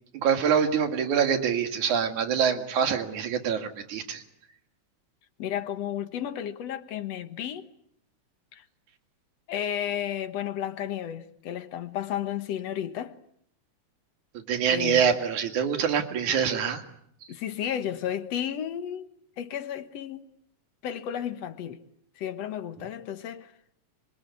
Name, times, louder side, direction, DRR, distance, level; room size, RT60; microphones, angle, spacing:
voice 1, 0.1-4.2 14.3-16.8, right 7 dB, 90° right, 3.5 m, -25 dB
voice 2, 5.4-7.7 8.5-8.6 9.5-13.2 14.7-15.1 17.3-20.3 20.8-21.8 22.2-23.5, left 10 dB, 65° left, 2.3 m, -33 dB
26.0 x 22.5 x 9.5 m
omnidirectional pair, 3.3 m